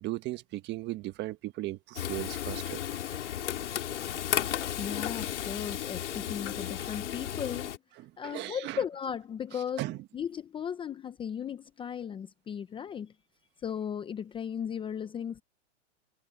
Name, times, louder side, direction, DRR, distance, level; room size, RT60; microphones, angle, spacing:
voice 1, 0.0-2.8 8.2-8.8 9.8-10.0, right 17 dB, 30° right, 1.5 m, -36 dB
Frying (food), 1.9-7.8, left 10 dB, 90° left, 3.3 m, -34 dB
voice 2, 4.8-7.7 8.2-9.9 10.1-13.1 13.6-15.4, left 8 dB, 15° left, 0.8 m, -36 dB
hypercardioid pair, 140°, 34 cm